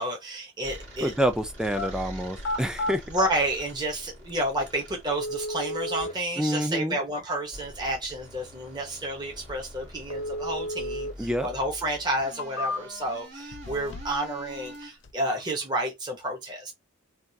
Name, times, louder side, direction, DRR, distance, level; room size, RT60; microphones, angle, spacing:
voice 1, 0.0-1.1 3.1-16.7, right 1 dB, 20° right, 0.8 m, -30 dB
sound 1, 0.6-6.2 7.5-14.9, equal, 65° right, 1.9 m, -45 dB
voice 2, 1.0-3.0 6.4-7.0 11.2-11.5, equal, 5° right, 0.3 m, -27 dB
sound 2, 1.6-1.9 2.3-3.3 4.3-4.4 5.1-6.1 10.1-11.1 11.5-11.6 12.2-13.1 13.5-14.2 14.5-15.1, left 1 dB, 60° left, 0.6 m, -32 dB
3.5 x 2.3 x 2.7 m
head